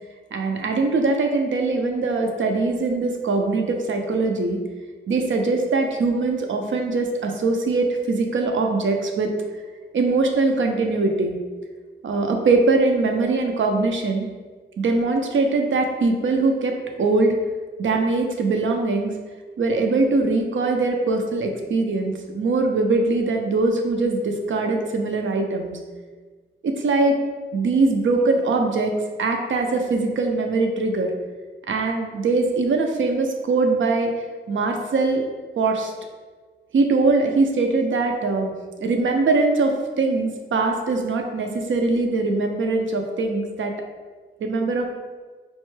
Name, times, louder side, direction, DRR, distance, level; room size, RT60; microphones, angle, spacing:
voice 1, 0.3-4.6 5.1-9.3 9.9-11.4 12.0-14.3 14.8-17.3 17.8-19.1 19.6-25.7 26.6-27.2 27.5-28.9 29.2-31.1 31.7-34.1 34.5-35.2 35.6-35.9 36.7-38.5 38.8-43.7 44.4-44.9, right 3 dB, 75° right, 3 dB, 0.5 m, -22 dB
4.3 x 2.1 x 3.1 m, 1.4 s
wide cardioid pair, 80°, 20 cm